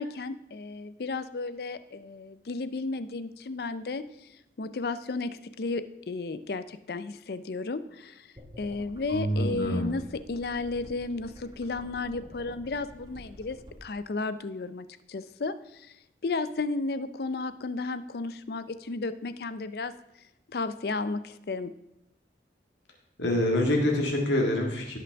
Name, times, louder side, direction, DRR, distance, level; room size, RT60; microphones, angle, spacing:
voice 1, 0.0-4.3 4.6-8.3 8.6-16.0 16.2-19.9 20.5-21.7, left 3 dB, 60° left, 13 dB, 0.5 m, -33 dB
sound 1, 8.4-13.8, equal, 20° right, 1.4 m, -49 dB
voice 2, 9.1-9.9 23.2-25.0, left 1 dB, 90° left, 0 dB, 1.7 m, -26 dB
16.5 x 6.0 x 3.5 m, 0.87 s
head